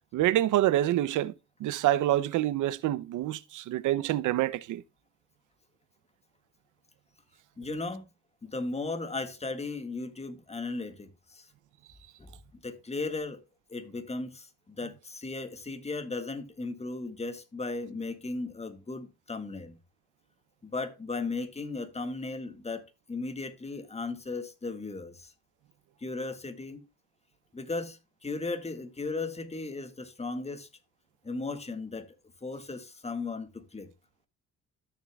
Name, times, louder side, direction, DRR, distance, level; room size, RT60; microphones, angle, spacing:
voice 1, 0.1-1.3 1.6-4.8, right 14 dB, 80° right, 0.7 m, -26 dB
voice 2, 7.6-8.0 8.4-11.5 12.2-12.3 12.6-13.4 13.7-19.8 20.6-22.8 23.1-25.3 26.0-26.8 27.5-30.7 31.2-32.1 32.4-33.9, left 3 dB, 20° left, 1.8 m, -36 dB
13.0 x 6.8 x 2.3 m
cardioid pair, 90°, 30 cm